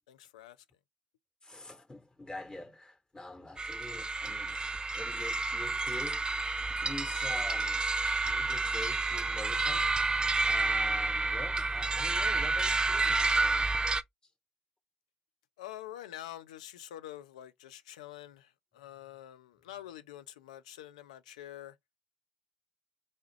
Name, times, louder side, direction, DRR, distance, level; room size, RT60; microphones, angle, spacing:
voice 1, 0.1-0.6 15.6-21.8, left 12 dB, 80° left, 0.4 m, -46 dB
voice 2, 1.4-4.6 4.9-6.2 6.8-7.8 8.2-13.7, left 2 dB, 20° left, 1.1 m, -46 dB
sound 1, 3.6-14.0, right 3 dB, 25° right, 0.4 m, -30 dB
4.1 x 2.3 x 3.2 m
hypercardioid pair, 50°, 4 cm